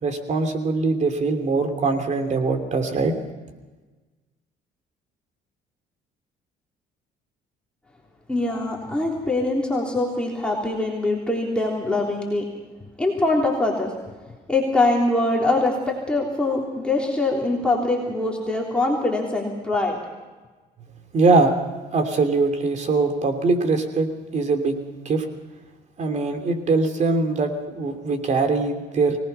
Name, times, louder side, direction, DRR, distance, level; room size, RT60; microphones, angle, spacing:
voice 1, 0.0-3.1 21.1-21.5 21.9-24.8 25.0-25.2 26.0-29.2, right 3 dB, 45° right, 6 dB, 3.0 m, -22 dB
voice 2, 8.3-12.4 13.0-13.9 14.5-20.0, left 2 dB, 5° left, -3 dB, 3.5 m, -23 dB
24.5 x 18.5 x 5.7 m, 1.3 s
cardioid pair, 110°, 17 cm